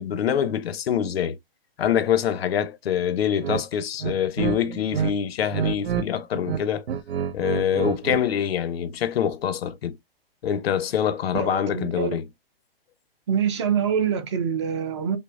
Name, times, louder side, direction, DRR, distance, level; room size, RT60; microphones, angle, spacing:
voice 1, 0.0-1.4 1.8-6.8 7.3-10.0 10.4-12.2, left 9 dB, 75° left, 0.7 m, -25 dB
sound 1, 3.4-3.6 4.0-5.1 5.4-6.1 6.3-8.3, right 8 dB, 85° right, 0.6 m, -28 dB
voice 2, 11.3-12.2 13.3-15.2, right 7 dB, 30° right, 0.5 m, -25 dB
5.4 x 2.0 x 2.3 m
hypercardioid pair, 160°, 30 cm